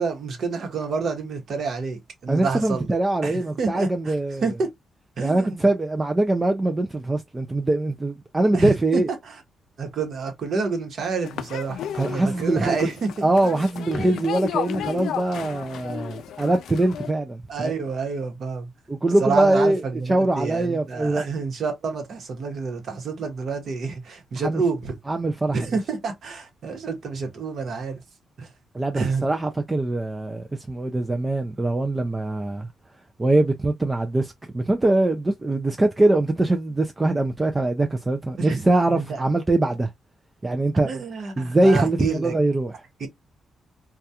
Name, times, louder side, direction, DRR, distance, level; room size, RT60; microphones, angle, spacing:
voice 1, 0.0-2.9 3.2-4.2 4.4-4.7 5.2-5.6 8.5-9.4 9.8-13.2 13.9-14.2 17.5-18.7 19.2-25.0 25.5-28.0 28.4-28.5 28.9-29.3 38.4-38.6 38.9-39.2 40.7-42.4 43.0-43.1, right 4 dB, 60° right, 1.0 m, -28 dB
voice 2, 2.3-4.5 5.2-9.1 12.0-12.9 13.2-17.7 18.9-21.2 24.4-24.6 25.1-25.7 28.7-32.7 33.2-39.9 40.4-41.0 41.4-42.8, right 2 dB, 20° right, 0.3 m, -22 dB
sound 1, 11.2-17.1, left 9 dB, 85° left, 0.3 m, -33 dB
2.3 x 2.3 x 2.7 m
cardioid pair, 110°, 0 cm